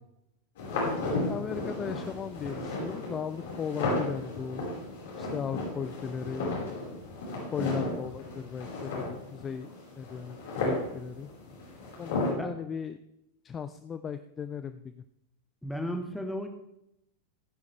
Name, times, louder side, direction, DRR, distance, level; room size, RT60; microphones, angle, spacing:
sound 1, 0.6-12.3, left 2 dB, 55° left, 5.0 m, -34 dB
voice 1, 1.2-4.6 5.2-6.8 7.5-9.7 10.0-11.3 12.0-13.0 13.4-14.9, left 7 dB, 25° left, 11 dB, 0.4 m, -37 dB
voice 2, 15.6-16.5, equal, 5° left, 5 dB, 1.5 m, -34 dB
16.0 x 9.6 x 3.4 m, 0.81 s
figure-of-eight pair, 90°, 0 cm